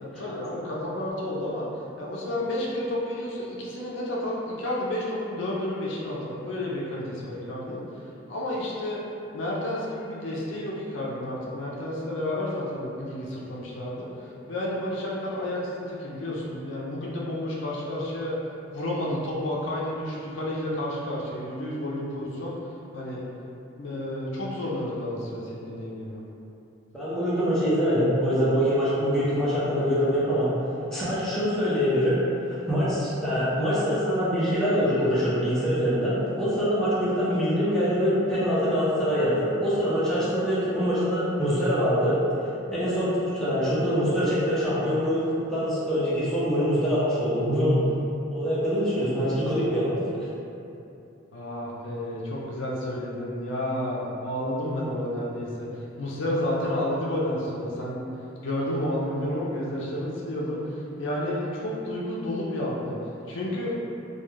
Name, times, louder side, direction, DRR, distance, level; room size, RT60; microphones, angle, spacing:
voice 1, 0.0-1.7 2.0-9.0 9.3-18.4 18.7-22.6 22.9-23.2 23.8-26.2 51.3-58.0 58.4-63.0 63.3-63.8, left 1 dB, 65° left, -4 dB, 0.4 m, -31 dB
voice 2, 26.9-30.5 30.9-32.2 32.5-42.2 42.7-45.2 45.5-47.8 48.3-50.0, equal, ahead, -11 dB, 0.5 m, -24 dB
2.3 x 2.2 x 3.1 m, 2.7 s
head